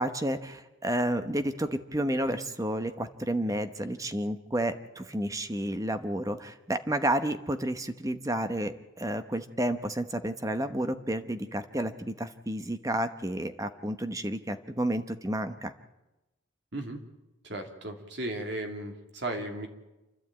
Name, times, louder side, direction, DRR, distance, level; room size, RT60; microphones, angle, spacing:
voice 1, 0.0-15.7, right 1 dB, 15° right, 9 dB, 0.9 m, -31 dB
voice 2, 17.4-19.7, right 1 dB, 55° right, 3 dB, 2.6 m, -35 dB
28.5 x 12.0 x 8.9 m, 1.0 s
head